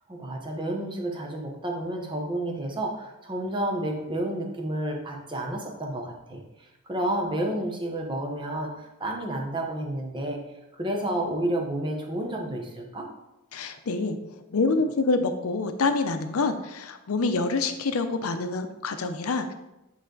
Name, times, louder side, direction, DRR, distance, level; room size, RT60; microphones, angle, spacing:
voice 1, 0.1-10.4 10.7-13.1, right 1 dB, 20° right, 1 dB, 0.9 m, -30 dB
voice 2, 13.5-19.5, left 3 dB, 75° left, 8 dB, 0.6 m, -27 dB
9.0 x 3.3 x 3.9 m, 0.94 s
head